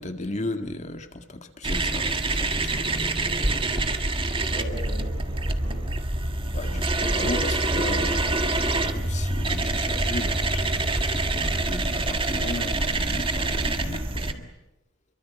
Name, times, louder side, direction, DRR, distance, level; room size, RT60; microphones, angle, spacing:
voice 1, 0.0-3.0 6.5-14.5, left 2 dB, 40° left, 1.9 m, -35 dB
sound 1, 1.6-14.3, right 2 dB, 30° right, 1.8 m, -26 dB
voice 2, 2.6-3.8 4.3-5.9 13.7-14.0, equal, 65° right, 6.4 m, -41 dB
27.5 x 24.0 x 8.4 m
head